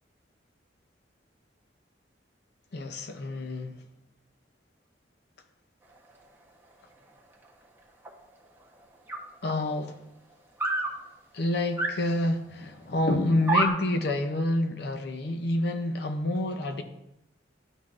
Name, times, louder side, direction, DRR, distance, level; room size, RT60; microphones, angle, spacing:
voice 1, 2.7-3.8 9.4-10.0 11.3-16.8, left 1 dB, 60° left, 0.6 m, -28 dB
sound 1, 8.0-8.1 9.1-9.2 10.6-10.9 11.8-11.9 12.5-12.6 13.4-13.7, right 3 dB, 10° right, 1.0 m, -25 dB
11.5 x 5.8 x 2.5 m
head